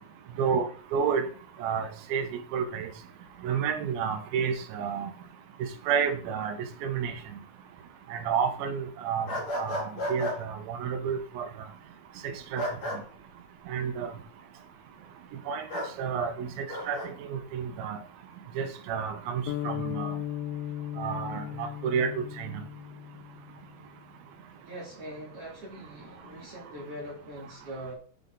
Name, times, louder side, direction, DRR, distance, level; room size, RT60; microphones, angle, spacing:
voice 1, 0.3-0.7 24.7-28.0, right 1 dB, 45° right, -6 dB, 2.9 m, -42 dB
voice 2, 0.9-1.3 1.6-2.3 2.5-2.9 3.4-5.1 5.9-7.2 8.1-11.5 12.2-12.7 13.7-14.1 15.5-18.0 18.6-20.1 21.0-22.6, right 7 dB, 75° right, 6 dB, 2.7 m, -30 dB
sound 1, 9.3-10.4 12.6-13.0 15.7-15.9 16.7-17.1, left 1 dB, 40° left, 2.8 m, -32 dB
sound 2, 19.5-23.7, left 11 dB, 80° left, 2.2 m, -36 dB
8.0 x 5.7 x 3.8 m, 0.43 s
omnidirectional pair, 4.4 m